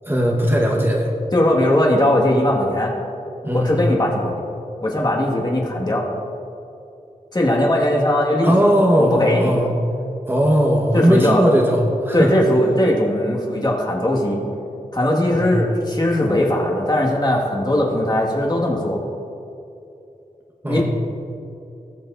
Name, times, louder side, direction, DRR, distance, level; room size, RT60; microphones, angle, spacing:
voice 1, 0.1-1.1 3.4-3.9 8.4-9.7 10.3-12.3 15.3-15.7 20.6-20.8, equal, 15° right, -2 dB, 1.2 m, -18 dB
voice 2, 1.3-2.9 3.5-4.3 4.8-6.0 7.3-8.5 8.8-9.6 10.9-11.5 12.1-14.4 14.9-19.0 20.7-20.8, left 1 dB, 30° left, -2 dB, 1.7 m, -19 dB
19.5 x 7.1 x 2.5 m, 2.7 s
wide cardioid pair, 80°, 14 cm